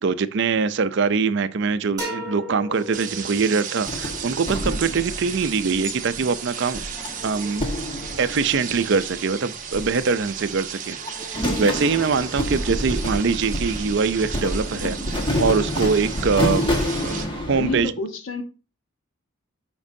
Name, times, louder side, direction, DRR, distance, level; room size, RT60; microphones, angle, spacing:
voice 1, 0.0-6.8 7.2-7.7 8.2-11.0 11.3-16.7 17.0-17.9, right 5 dB, 55° right, 0.5 m, -23 dB
sound 1, 2.0-3.7, left 1 dB, 20° right, 3.9 m, -34 dB
sound 2, 2.7-17.3, right 7 dB, 40° right, 0.9 m, -35 dB
sound 3, 3.9-6.2 6.7-9.2 9.7-10.6 10.9-17.8, left 1 dB, 25° left, 1.5 m, -28 dB
voice 2, 17.5-18.4, left 3 dB, 65° left, 1.2 m, -28 dB
12.5 x 5.3 x 2.7 m
head